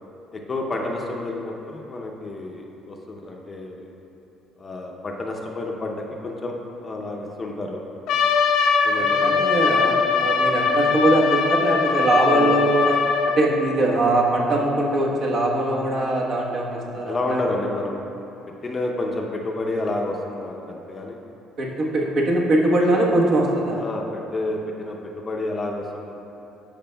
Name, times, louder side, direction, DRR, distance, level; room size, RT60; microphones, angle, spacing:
voice 1, 0.3-3.9 4.6-6.5 6.8-7.8 8.8-9.6 12.2-12.5 16.7-18.0 18.6-21.2 21.8-21.9 23.8-26.2, left 2 dB, 25° left, 0 dB, 0.6 m, -30 dB
Trumpet, 8.1-13.4, left 5 dB, 70° left, 0.7 m, -21 dB
voice 2, 9.0-13.0 13.4-17.4 21.6-23.8, right 2 dB, 55° right, -3 dB, 1.2 m, -21 dB
12.0 x 5.1 x 2.2 m, 3.0 s
cardioid pair, 130°, 0 cm